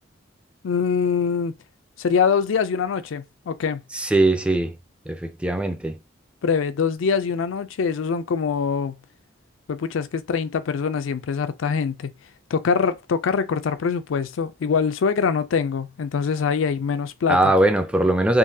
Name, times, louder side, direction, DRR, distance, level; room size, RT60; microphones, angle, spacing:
voice 1, 0.6-1.5 2.0-3.8 6.4-9.0 9.7-12.1 12.5-17.5, left 6 dB, 80° left, 0.4 m, -23 dB
voice 2, 3.9-4.7 5.1-6.0 17.3-18.4, right 1 dB, 5° right, 0.3 m, -20 dB
3.7 x 2.6 x 2.7 m
head